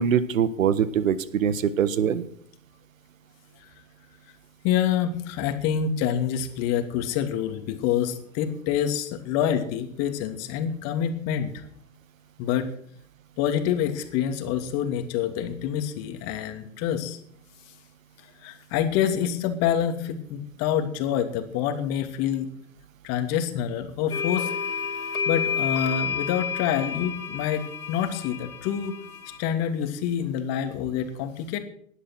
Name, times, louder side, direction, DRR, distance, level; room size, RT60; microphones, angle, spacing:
voice 1, 0.0-2.3, right 8 dB, 70° right, 15 dB, 1.6 m, -23 dB
voice 2, 4.6-11.6 12.4-12.7 13.4-17.2 18.4-22.5 23.0-24.5 25.3-28.9 29.4-31.6, left 9 dB, 35° left, 7 dB, 2.8 m, -27 dB
sound 1, 24.1-29.4, left 6 dB, 80° left, 3.8 m, -30 dB
19.0 x 12.0 x 6.3 m, 0.64 s
hypercardioid pair, 115°, 42 cm